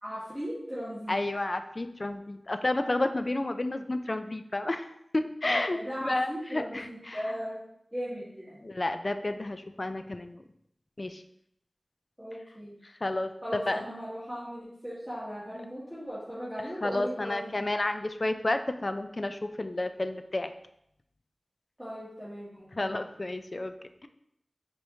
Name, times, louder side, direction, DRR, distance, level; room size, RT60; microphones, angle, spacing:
voice 1, 0.0-1.1 5.4-7.6 7.9-8.6 12.2-12.7 13.4-17.7 21.8-22.9, equal, ahead, -11 dB, 1.5 m, -38 dB
voice 2, 1.1-4.9 5.1-7.2 8.6-10.4 11.0-11.2 12.8-13.9 16.8-20.5 22.7-23.7, left 2 dB, 45° left, 8 dB, 0.3 m, -31 dB
4.7 x 2.9 x 2.7 m, 0.76 s
wide cardioid pair, 50°, 0 cm